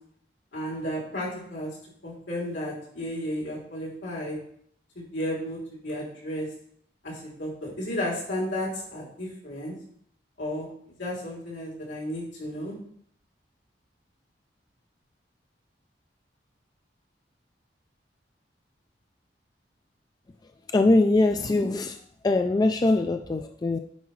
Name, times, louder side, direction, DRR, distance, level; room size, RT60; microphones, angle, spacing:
voice 1, 0.5-1.7 2.0-4.4 4.9-5.6 5.8-6.5 7.0-9.7 10.4-12.7, equal, 80° left, -5 dB, 3.0 m, -33 dB
voice 2, 20.7-22.0 22.2-23.8, left 2 dB, 20° left, 6 dB, 0.3 m, -22 dB
9.1 x 4.9 x 3.2 m, 0.66 s
head